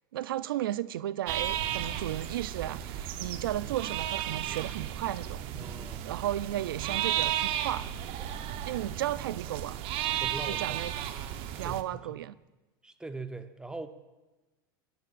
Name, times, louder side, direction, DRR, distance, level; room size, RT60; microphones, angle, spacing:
voice 1, 0.1-5.4 6.0-7.9 8.6-9.8 10.5-10.9 11.6-12.4, right 13 dB, 90° right, 18 dB, 0.4 m, -34 dB
sound 1, 1.3-11.8, right 11 dB, 55° right, 0.8 m, -34 dB
voice 2, 5.5-6.0 6.9-7.0 10.2-10.8 11.5-12.2 12.8-13.9, right 3 dB, 5° right, 8 dB, 0.8 m, -42 dB
17.5 x 10.5 x 2.5 m, 1.1 s
hypercardioid pair, 105°, 11 cm